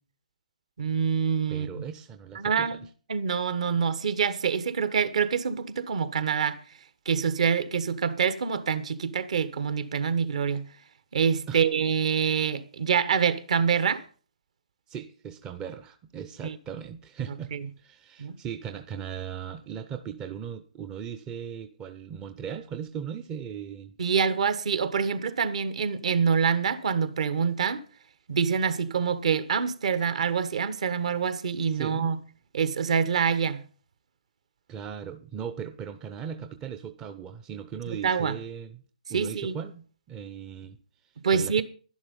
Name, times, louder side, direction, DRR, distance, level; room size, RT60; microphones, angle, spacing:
voice 1, 0.8-1.8 2.3-2.8 3.1-6.6 7.0-10.7 11.1-14.0 16.4-16.6 17.5-17.6 18.2-18.4 24.0-27.8 28.3-32.2 32.5-33.6 37.9-38.3 39.1-39.6 41.2-41.6, right 6 dB, 55° right, 1.3 m, -26 dB
voice 2, 1.5-2.9 11.5-11.6 14.9-17.5 17.8-23.9 31.7-32.1 34.7-38.8 39.1-40.8 41.3-41.6, right 8 dB, 15° right, 0.7 m, -38 dB
11.5 x 11.0 x 5.4 m
figure-of-eight pair, 135°, 4 cm